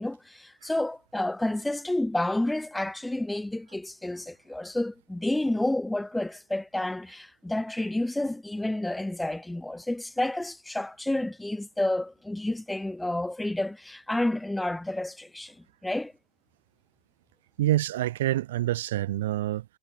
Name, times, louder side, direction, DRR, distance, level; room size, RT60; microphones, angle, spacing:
voice 1, 0.0-15.6 15.8-16.1, left 1 dB, 5° left, 4.3 m, -30 dB
voice 2, 17.6-19.6, right 14 dB, 70° right, 1.3 m, -26 dB
hypercardioid pair, 85°, 0 cm